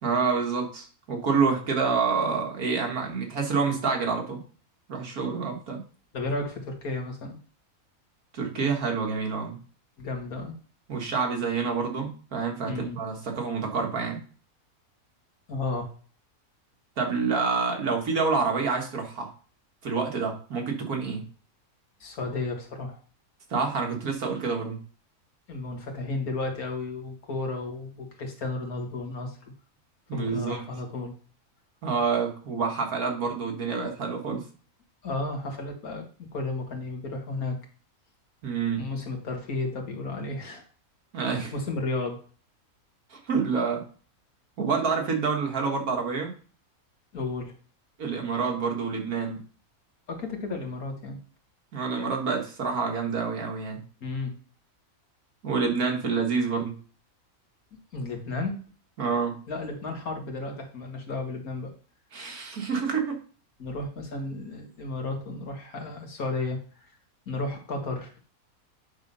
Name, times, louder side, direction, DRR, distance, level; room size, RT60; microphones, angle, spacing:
voice 1, 0.0-4.4 4.9-5.8 8.3-9.6 10.9-14.2 17.0-19.3 19.8-21.2 23.5-24.8 30.1-30.6 31.8-34.4 38.4-38.8 41.1-41.5 43.1-43.8 44.6-46.3 48.0-49.4 51.7-53.8 55.4-56.7 59.0-59.4 62.1-63.2, right 5 dB, 75° right, 2 dB, 2.1 m, -27 dB
voice 2, 6.1-7.4 10.0-10.5 12.7-13.0 15.5-15.9 22.0-23.0 25.5-29.5 30.1-31.1 35.0-36.0 36.3-37.6 38.8-40.6 41.5-42.2 47.1-47.5 50.1-51.2 54.0-54.3 57.9-58.6 59.5-61.7 63.6-66.9 67.3-68.2, left 2 dB, 75° left, 2 dB, 2.1 m, -33 dB
9.6 x 3.8 x 5.5 m, 0.39 s
omnidirectional pair, 1.6 m